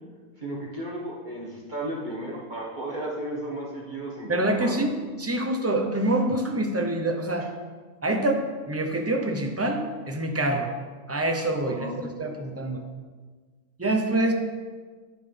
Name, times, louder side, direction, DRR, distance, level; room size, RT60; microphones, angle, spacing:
voice 1, 0.4-4.8 11.6-11.9, right 1 dB, 30° right, -4 dB, 1.7 m, -34 dB
voice 2, 4.3-7.5 8.0-10.7 11.1-12.8 13.8-14.3, right 1 dB, 15° right, 3 dB, 0.5 m, -26 dB
10.0 x 9.2 x 3.4 m, 1.4 s
omnidirectional pair, 1.6 m